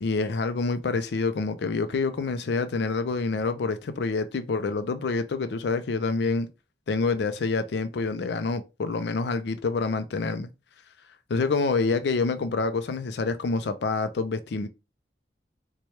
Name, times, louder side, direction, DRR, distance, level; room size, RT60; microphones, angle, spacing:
voice 1, 0.0-6.5 6.9-10.5 11.3-14.7, left 4 dB, 80° left, 0.4 m, -27 dB
4.3 x 2.2 x 3.1 m
head